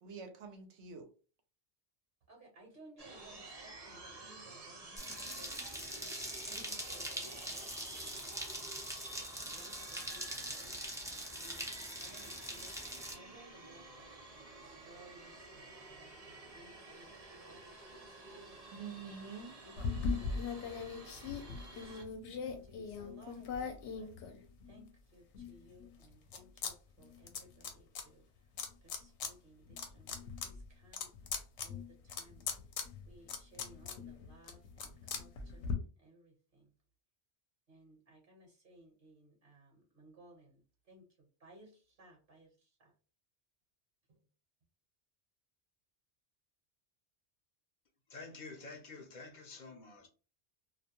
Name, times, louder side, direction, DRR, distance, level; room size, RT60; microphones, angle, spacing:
voice 1, 0.0-1.1 6.5-6.8 18.7-19.6 20.1-20.2, right 5 dB, 85° right, 0.9 m, -47 dB
voice 2, 2.3-8.8 9.1-14.1 14.6-17.1 17.4-18.0 18.3-18.9 19.6-20.7 21.2-22.0 22.5-24.1 24.7-28.2 28.8-31.1 31.6-32.6 33.1-36.7 37.7-40.6 40.9-42.9, right 1 dB, 55° right, 1.0 m, -60 dB
sound 1, 3.0-22.0, right 2 dB, 40° right, 0.8 m, -52 dB
sound 2, 5.0-13.1, equal, 5° right, 0.3 m, -43 dB
sound 3, 19.8-24.8 25.3-26.7 27.0-28.0 28.6-29.3 29.7-35.7, left 5 dB, 80° left, 0.9 m, -40 dB
voice 3, 48.1-50.1, left 3 dB, 55° left, 0.6 m, -49 dB
2.4 x 2.1 x 2.8 m
omnidirectional pair, 1.2 m